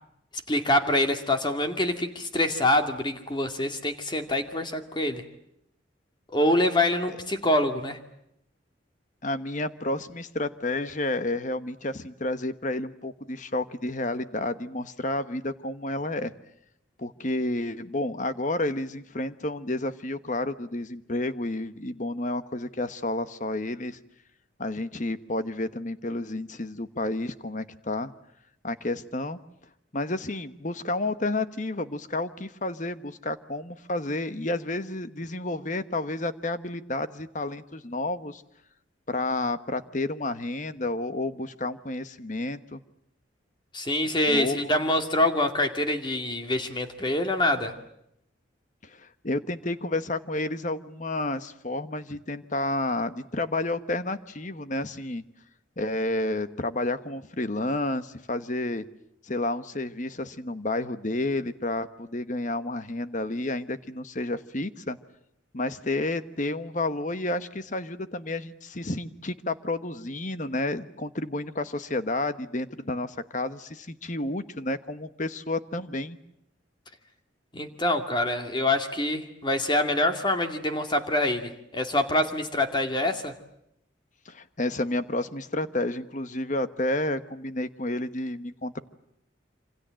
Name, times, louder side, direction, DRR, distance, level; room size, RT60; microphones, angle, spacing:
voice 1, 0.5-5.2 6.3-8.0 43.7-47.7 77.5-83.3, left 1 dB, 25° left, 6 dB, 2.3 m, -25 dB
voice 2, 9.2-16.3 17.0-24.0 24.6-28.1 28.6-29.4 29.9-38.4 39.1-42.8 44.3-44.7 48.8-55.2 55.8-58.8 59.2-65.0 65.5-76.2 84.2-88.8, left 2 dB, 40° left, 12 dB, 1.2 m, -30 dB
27.5 x 26.5 x 7.7 m, 0.79 s
head